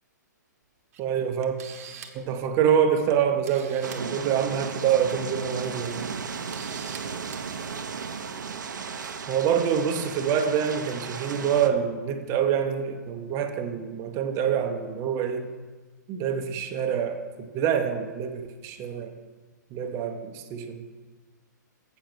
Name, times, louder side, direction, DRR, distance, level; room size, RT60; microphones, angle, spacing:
Camera, 0.9-1.0 1.4-2.3 3.1-3.2 3.4-4.0 5.2-5.4 5.9-6.0 6.5-7.0 7.3-7.4, right 8 dB, 50° right, 1.1 m, -43 dB
voice 1, 1.0-1.6 2.1-6.1 9.3-15.5 16.1-19.1 19.7-20.9, right 8 dB, 30° right, 6 dB, 0.8 m, -26 dB
sound 1, 3.8-11.7, right 6 dB, 75° right, 0.8 m, -35 dB
7.8 x 6.6 x 6.1 m, 1.3 s
hypercardioid pair, 135°, 10 cm